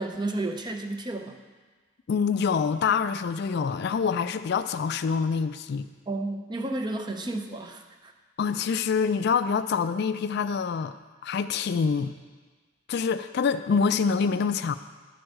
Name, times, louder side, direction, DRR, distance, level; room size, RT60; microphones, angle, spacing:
voice 1, 0.0-1.4 6.1-8.1, right 2 dB, 20° right, 5 dB, 0.6 m, -32 dB
voice 2, 2.1-5.9 8.4-11.0 11.2-12.1 12.9-14.7, left 5 dB, 55° left, 11 dB, 0.3 m, -26 dB
10.5 x 4.6 x 6.4 m, 1.4 s
head